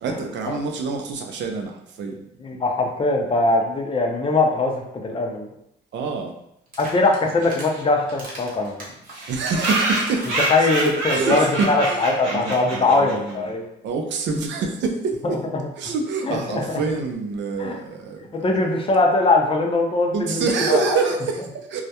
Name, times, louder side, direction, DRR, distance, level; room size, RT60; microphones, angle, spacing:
voice 1, 0.0-2.2 5.9-6.3 9.3-10.2 10.6-13.5 13.8-15.4 15.8-18.4 20.1-21.8, right 4 dB, 65° right, 3 dB, 0.5 m, -26 dB
voice 2, 2.4-4.7 5.0-5.5 6.8-8.8 10.5-13.7 15.2-15.4 16.2-16.8 17.6-17.8 18.4-21.0, left 2 dB, 25° left, 2 dB, 0.5 m, -21 dB
sound 1, 6.7-7.7 8.1-11.5 11.8-11.9 12.2-12.3 12.4-12.7, right 1 dB, 45° right, 1.0 m, -39 dB
sound 2, 7.4-7.5 7.7-7.8 8.1-8.2 8.4-8.5 9.1-13.3, right 2 dB, 90° right, 0.9 m, -26 dB
2.3 x 2.1 x 2.8 m, 0.78 s
cardioid pair, 90°, 20 cm